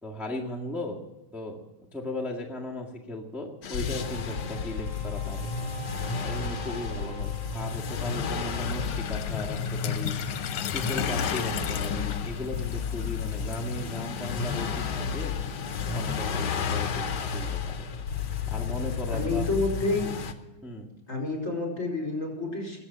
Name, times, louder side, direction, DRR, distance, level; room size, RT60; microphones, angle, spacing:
voice 1, 0.0-1.0 1.3-1.6 1.9-5.5 6.2-10.2 10.7-15.4 15.9-17.9 18.5-19.5 20.6-20.9, left 1 dB, ahead, -4 dB, 1.7 m, -37 dB
sound 1, 3.6-20.3, left 6 dB, 55° left, 1.5 m, -32 dB
Wind instrument woodwind instrument, 3.9-8.5, right 4 dB, 75° right, 5.9 m, -45 dB
sound 2, 8.6-17.0, left 9 dB, 75° left, 1.7 m, -37 dB
voice 2, 19.1-20.1 21.1-22.8, left 2 dB, 35° left, 2 dB, 5.1 m, -29 dB
21.5 x 8.3 x 7.5 m, 0.98 s
omnidirectional pair, 2.4 m